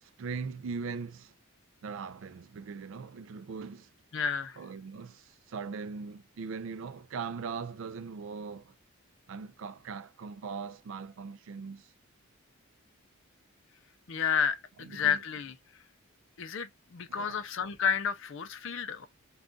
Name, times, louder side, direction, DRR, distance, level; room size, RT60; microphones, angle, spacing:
voice 1, 0.0-1.3 1.8-3.9 4.6-8.7 9.3-11.9 14.8-15.2 17.1-17.4, right 5 dB, 60° right, 0.3 m, -40 dB
voice 2, 4.1-4.6 14.1-15.5 16.4-19.1, left 7 dB, 60° left, 0.5 m, -31 dB
2.4 x 2.3 x 3.7 m
head